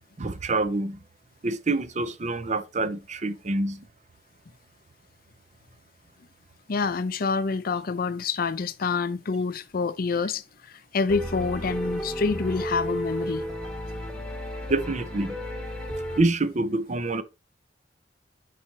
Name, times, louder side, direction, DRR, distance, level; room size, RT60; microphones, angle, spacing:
voice 1, 0.2-1.0 1.4-3.8 14.7-15.3 16.2-17.2, right 2 dB, 40° right, 0.6 m, -26 dB
voice 2, 6.7-13.4, left 4 dB, 55° left, 0.5 m, -27 dB
sound 1, 11.1-16.2, equal, 5° left, 1.7 m, -33 dB
11.0 x 4.2 x 2.8 m
head